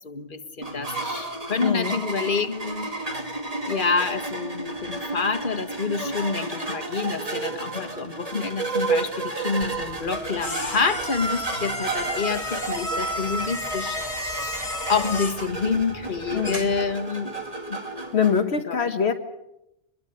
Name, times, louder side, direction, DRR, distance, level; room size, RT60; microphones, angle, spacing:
voice 1, 0.0-2.9 3.7-14.6 14.9-17.4 17.7-17.8 18.7-18.9, left 5 dB, 50° left, 8 dB, 1.8 m, -28 dB
sound 1, 0.6-18.4, right 3 dB, 35° right, 2.4 m, -32 dB
voice 2, 1.6-2.0 16.3-16.7 18.1-19.1, left 7 dB, 75° left, 5 dB, 1.5 m, -23 dB
sound 2, 9.6-16.9, left 1 dB, 35° left, 2.5 m, -32 dB
24.0 x 22.0 x 8.2 m, 0.86 s
omnidirectional pair, 1.1 m